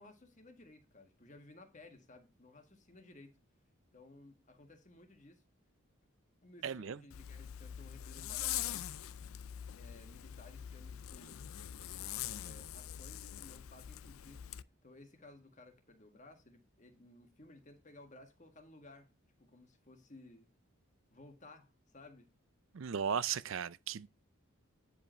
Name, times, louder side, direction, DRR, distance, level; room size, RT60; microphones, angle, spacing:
voice 1, 0.0-3.4 3.9-5.4 6.4-8.9 9.7-11.4 12.2-14.5 14.8-19.1 19.4-20.5 21.1-22.3, left 2 dB, 35° left, 1.6 m, -57 dB
voice 2, 6.6-7.0 22.7-24.1, right 7 dB, 65° right, 0.5 m, -36 dB
Zipper (clothing), 7.1-14.6, left 11 dB, 75° left, 0.4 m, -43 dB
9.8 x 5.1 x 4.4 m
head